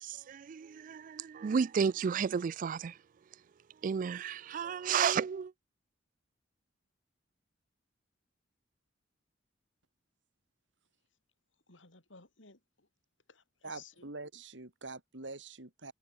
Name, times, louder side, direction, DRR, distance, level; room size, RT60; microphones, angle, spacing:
voice 1, 0.0-3.0 3.8-5.5, right 6 dB, 45° right, 0.3 m, -32 dB
voice 2, 11.7-12.9 13.3-14.1, left 5 dB, 85° left, 6.4 m, -57 dB
voice 3, 13.6-15.9, right 3 dB, 75° right, 3.0 m, -45 dB
head